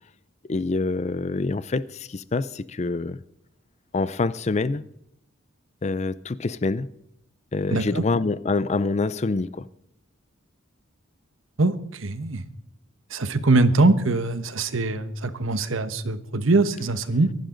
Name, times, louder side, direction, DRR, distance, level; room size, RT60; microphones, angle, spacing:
voice 1, 0.5-3.2 3.9-4.8 5.8-6.9 7.5-9.7, left 3 dB, 30° left, 0.4 m, -26 dB
voice 2, 7.7-8.0 11.6-12.4 13.1-17.3, right 2 dB, 70° right, 1.1 m, -22 dB
23.5 x 11.5 x 3.9 m
head